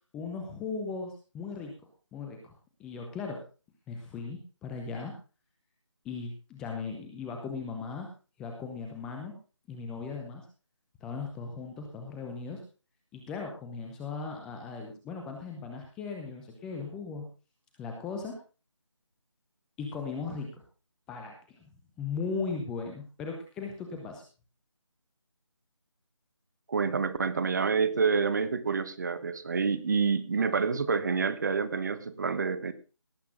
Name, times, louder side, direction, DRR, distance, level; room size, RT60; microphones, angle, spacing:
voice 1, 0.1-1.7 2.1-2.5 2.8-3.4 3.9-5.1 6.0-8.1 8.4-9.3 9.7-10.5 11.0-12.6 13.1-17.3 17.8-18.4 19.8-20.6 21.1-21.7 22.0-24.2, left 4 dB, 5° left, 2 dB, 0.8 m, -37 dB
voice 2, 26.7-32.7, right 5 dB, 35° right, 13 dB, 1.3 m, -28 dB
17.5 x 8.2 x 3.9 m, 0.34 s
figure-of-eight pair, 160°, 16 cm